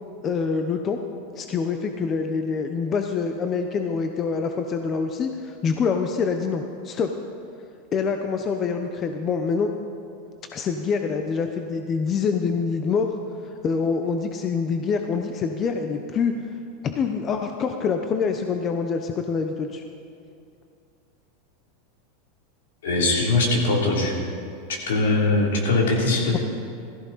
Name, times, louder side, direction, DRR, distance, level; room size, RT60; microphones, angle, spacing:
voice 1, 0.2-1.0 1.4-7.1 7.9-9.7 10.5-13.1 13.6-16.3 16.8-19.8 26.3-26.4, left 5 dB, 35° left, 5 dB, 0.9 m, -25 dB
voice 2, 22.8-24.1 24.9-26.4, left 2 dB, 80° left, -2 dB, 3.3 m, -21 dB
16.5 x 14.0 x 4.2 m, 2.5 s
hypercardioid pair, 105°, 0 cm